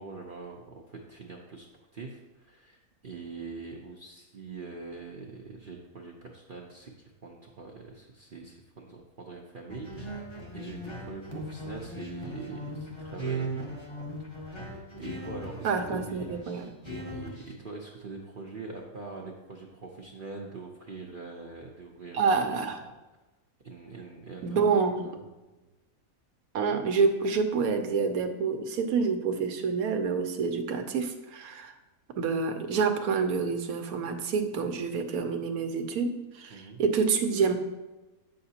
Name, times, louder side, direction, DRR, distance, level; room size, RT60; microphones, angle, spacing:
voice 1, 0.0-1.7 1.9-13.8 14.4-16.5 16.9-22.2 22.5-22.6 23.6-25.2 25.6-25.7 36.5-36.8, right 4 dB, 45° right, -1 dB, 0.7 m, -43 dB
sound 1, 9.7-17.5, right 1 dB, 20° left, 1.0 m, -38 dB
voice 2, 15.6-16.8 22.1-22.8 24.4-25.2 26.5-31.7 32.2-37.5, right 5 dB, 80° right, 7 dB, 1.2 m, -28 dB
8.7 x 6.4 x 2.8 m, 1.1 s
omnidirectional pair, 1.5 m